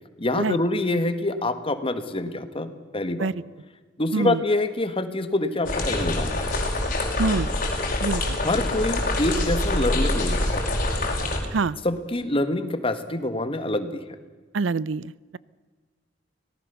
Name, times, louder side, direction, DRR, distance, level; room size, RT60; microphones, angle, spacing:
voice 1, 0.2-3.3 4.0-6.5 8.4-10.6 11.8-14.0, left 2 dB, 30° left, 10 dB, 1.6 m, -26 dB
sound 1, 5.6-11.4, left 1 dB, 45° left, 5.0 m, -25 dB
voice 2, 8.0-8.4 11.5-11.8 14.5-15.4, right 4 dB, 90° right, 21 dB, 0.5 m, -25 dB
25.0 x 18.0 x 6.9 m, 1.4 s
head